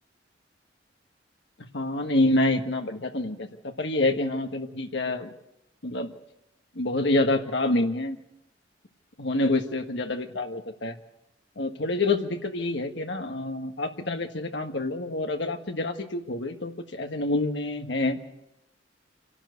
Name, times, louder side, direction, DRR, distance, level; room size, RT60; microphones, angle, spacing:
voice 1, 1.7-3.5 3.8-5.3 5.8-6.1 6.7-8.2 9.2-11.0 11.6-18.2, left 2 dB, 70° left, 5 dB, 1.6 m, -27 dB
27.5 x 12.0 x 8.2 m, 0.87 s
head